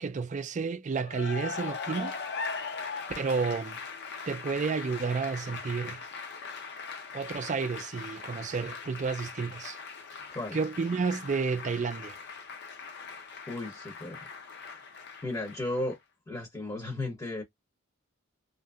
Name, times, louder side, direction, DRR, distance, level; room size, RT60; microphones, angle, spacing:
voice 1, 0.0-2.1 3.2-3.8 4.3-6.0 7.1-9.8 10.5-12.2, right 5 dB, 35° right, 0.4 m, -31 dB
Cheering / Applause, 1.0-15.9, left 5 dB, 55° left, 0.6 m, -40 dB
voice 2, 13.5-14.3 14.6-14.7 15.2-16.0 16.3-17.4, left 2 dB, 20° left, 0.7 m, -35 dB
2.8 x 2.5 x 2.3 m
head